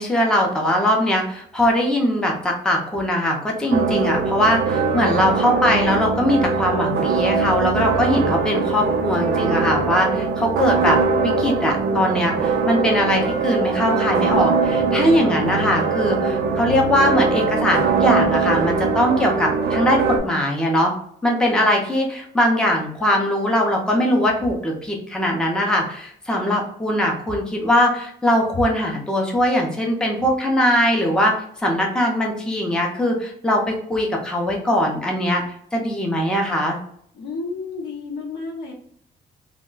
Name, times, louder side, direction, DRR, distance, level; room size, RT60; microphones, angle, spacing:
voice 1, 0.0-20.9 21.2-35.4 35.7-36.8, left 1 dB, 5° left, 0 dB, 0.5 m, -21 dB
sound 1, 3.7-20.2, right 4 dB, 85° right, 0.5 m, -21 dB
voice 2, 37.1-38.7, left 3 dB, 85° left, -1 dB, 0.9 m, -31 dB
2.2 x 2.1 x 3.7 m, 0.65 s
cardioid pair, 150°, 17 cm